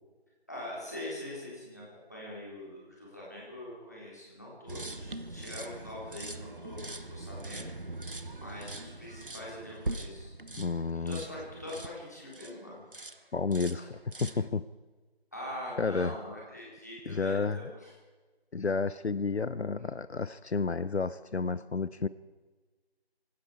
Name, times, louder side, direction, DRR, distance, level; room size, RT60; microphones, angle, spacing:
voice 1, 0.5-1.8 2.1-7.7 8.3-10.3 11.1-12.8 13.7-13.8 15.3-17.9, left 1 dB, 15° left, -6 dB, 3.4 m, -43 dB
sound 1, 4.7-12.6 12.9-13.2 13.5-14.5, right 2 dB, 55° right, 1.0 m, -42 dB
voice 2, 10.6-11.2 13.3-14.7 15.8-16.1 17.1-17.6 18.5-22.1, left 4 dB, 80° left, 16 dB, 0.7 m, -31 dB
25.0 x 12.5 x 4.6 m, 1.3 s
figure-of-eight pair, 180°, 32 cm